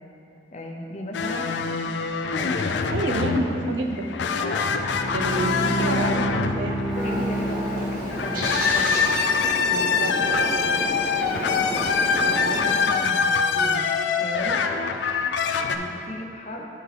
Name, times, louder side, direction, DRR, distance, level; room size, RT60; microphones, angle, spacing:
voice 1, 0.5-1.6 2.3-3.0 4.4-4.7 7.0-9.2 11.4-11.9 12.2-14.7 15.7-16.7, left 1 dB, 40° left, 1 dB, 0.6 m, -36 dB
sound 1, 1.1-7.1 8.1-15.8, left 5 dB, 85° left, 0.4 m, -24 dB
voice 2, 2.9-4.1 5.1-6.8 9.7-10.6 13.3-13.9, right 2 dB, 90° right, 3 dB, 0.6 m, -29 dB
Bowed string instrument, 4.5-8.5, right 1 dB, 5° right, 1.0 m, -29 dB
Bird, 6.9-12.9, equal, 50° right, 1.2 m, -31 dB
10.5 x 3.8 x 3.3 m, 2.8 s
head